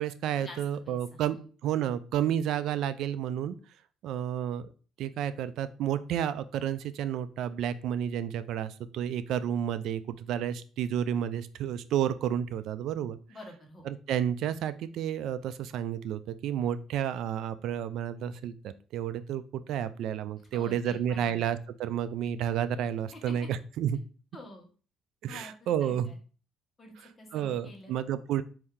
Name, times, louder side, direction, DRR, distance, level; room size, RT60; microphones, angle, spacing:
voice 1, 0.0-3.6 4.0-4.6 5.0-13.2 13.9-24.0 25.2-26.1 27.3-28.4, right 10 dB, 70° right, 13 dB, 0.3 m, -31 dB
voice 2, 0.8-1.5 13.3-13.9 20.5-21.4 23.1-23.5 24.3-24.7 25.3-26.2 26.8-27.9, left 1 dB, 25° left, 2 dB, 1.2 m, -48 dB
4.4 x 2.7 x 3.6 m, 0.38 s
cardioid pair, 105°, 0 cm